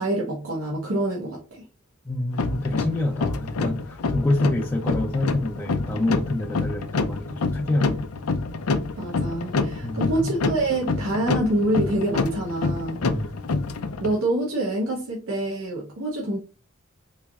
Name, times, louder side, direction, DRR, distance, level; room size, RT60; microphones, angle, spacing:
voice 1, 0.0-1.6 8.9-13.3 14.0-16.4, right 1 dB, 70° right, -2 dB, 0.8 m, -26 dB
voice 2, 2.1-8.0 9.8-10.3 13.0-13.3, left 2 dB, 10° left, -3 dB, 0.4 m, -27 dB
sound 1, 2.3-14.2, left 3 dB, 85° left, 0.4 m, -27 dB
3.7 x 3.1 x 2.3 m, 0.33 s
head